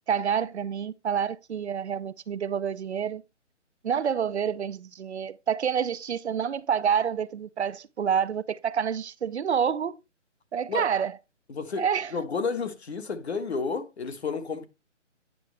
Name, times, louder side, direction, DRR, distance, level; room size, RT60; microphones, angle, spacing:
voice 1, 0.1-3.2 3.8-10.0 10.5-11.1 11.8-12.1, right 7 dB, 65° right, 0.6 m, -28 dB
voice 2, 11.5-11.9 12.1-14.6, left 5 dB, 60° left, 1.6 m, -31 dB
9.2 x 6.2 x 3.3 m
hypercardioid pair, 165°, 37 cm